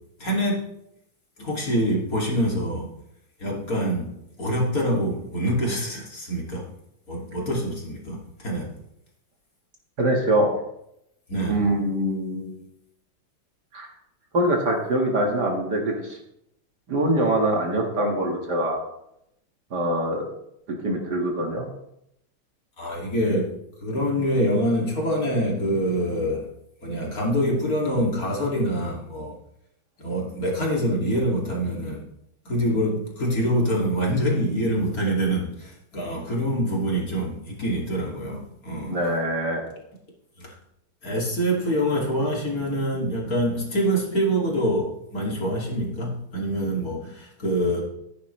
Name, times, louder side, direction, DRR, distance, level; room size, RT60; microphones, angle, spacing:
voice 1, 0.2-0.6 1.4-2.9 3.4-4.1 4.4-6.7 7.1-8.7 11.3-11.6 22.8-23.5 23.8-26.5 26.8-29.3 30.0-32.0 32.4-39.0 40.4-40.5 41.0-47.8, equal, 40° left, -2 dB, 3.0 m, -25 dB
voice 2, 10.0-10.5 11.5-12.6 13.7-13.9 14.3-16.2 16.9-18.8 19.7-20.2 20.7-21.7 38.9-39.6, right 1 dB, 50° right, 1 dB, 2.2 m, -24 dB
14.5 x 10.5 x 3.2 m, 0.78 s
omnidirectional pair, 2.4 m